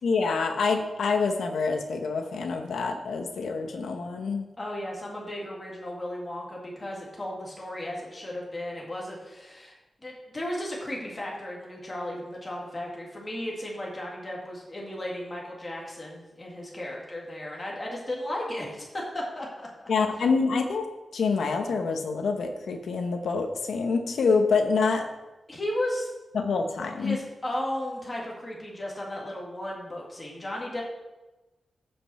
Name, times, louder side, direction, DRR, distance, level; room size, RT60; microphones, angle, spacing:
voice 1, 0.0-4.5 19.9-20.8 21.1-25.1 26.3-27.2, left 4 dB, 80° left, 5 dB, 1.0 m, -26 dB
voice 2, 4.6-9.7 10.0-19.9 25.5-26.1 27.0-30.8, left 1 dB, 20° left, -3 dB, 2.0 m, -35 dB
14.5 x 5.3 x 4.2 m, 1.1 s
wide cardioid pair, 160°, 0 cm